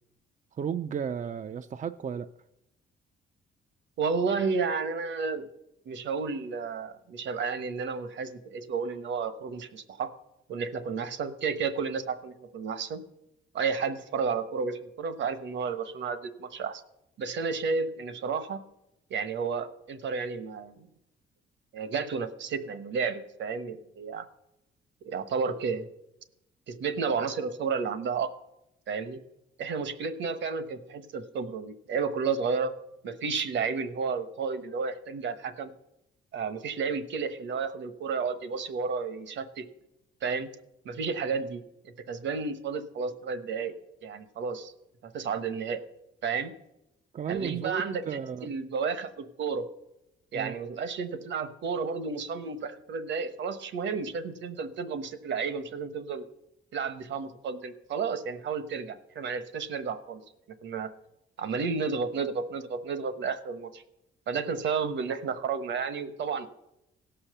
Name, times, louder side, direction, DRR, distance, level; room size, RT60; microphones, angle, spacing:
voice 1, 0.6-2.3 47.1-48.5 50.3-50.6, right 7 dB, 40° right, 11 dB, 0.5 m, -34 dB
voice 2, 4.0-5.5 5.8-10.1 10.5-13.0 13.5-16.8 17.2-18.6 19.1-20.9 21.7-24.2 25.0-25.9 26.7-28.3 28.9-29.2 29.6-32.7 33.0-35.7 36.3-39.6 40.2-40.5 40.8-43.7 44.0-44.7 45.0-45.8 46.2-46.5 47.3-49.7 50.3-56.2 56.7-60.2 60.6-60.9 61.4-63.8 64.3-66.5, right 5 dB, 65° right, 11 dB, 1.2 m, -32 dB
16.5 x 5.7 x 6.7 m, 0.88 s
cardioid pair, 90°, 20 cm